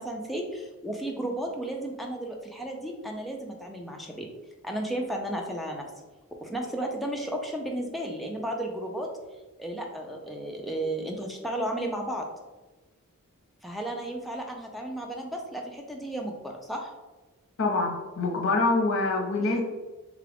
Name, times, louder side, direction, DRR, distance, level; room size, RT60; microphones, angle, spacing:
voice 1, 0.0-4.3 4.6-5.9 6.4-9.1 9.6-12.3 13.6-16.9, right 1 dB, ahead, 0 dB, 0.4 m, -33 dB
voice 2, 17.6-19.6, left 3 dB, 60° left, 1 dB, 0.7 m, -25 dB
3.8 x 2.4 x 3.4 m, 1.2 s
head